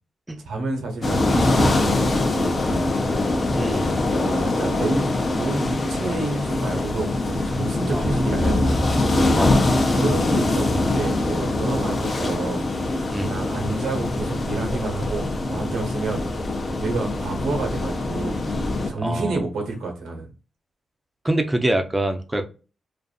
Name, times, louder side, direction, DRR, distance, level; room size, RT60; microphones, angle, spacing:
voice 1, 0.4-2.8 4.2-8.8 9.9-12.6 13.1-16.2 16.8-18.4 18.9-20.3, right 3 dB, 90° right, 2 dB, 1.0 m, -29 dB
sound 1, 1.0-18.9, left 2 dB, 45° left, 0.6 m, -23 dB
voice 2, 3.6-3.9 7.9-8.0 9.3-9.6 13.1-13.3 19.0-19.4 21.2-22.5, right 1 dB, 15° right, 6 dB, 0.5 m, -24 dB
2.6 x 2.5 x 2.3 m, 0.33 s
cardioid pair, 75°, 0 cm